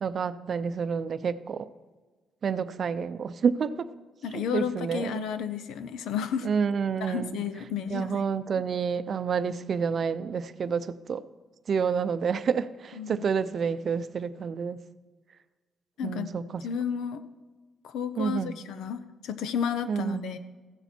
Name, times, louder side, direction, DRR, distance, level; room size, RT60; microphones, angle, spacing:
voice 1, 0.0-1.7 2.4-3.9 4.3-5.2 6.4-7.4 7.9-11.2 11.7-14.8 16.0-16.6 18.2-18.5 19.9-20.2, right 6 dB, 50° right, 14 dB, 0.5 m, -29 dB
voice 2, 4.2-6.5 7.0-8.2 13.0-13.3 16.0-16.3 16.6-17.2 17.8-20.4, left 7 dB, 80° left, 11 dB, 0.7 m, -32 dB
15.0 x 7.0 x 4.4 m, 1.3 s
cardioid pair, 90°, 0 cm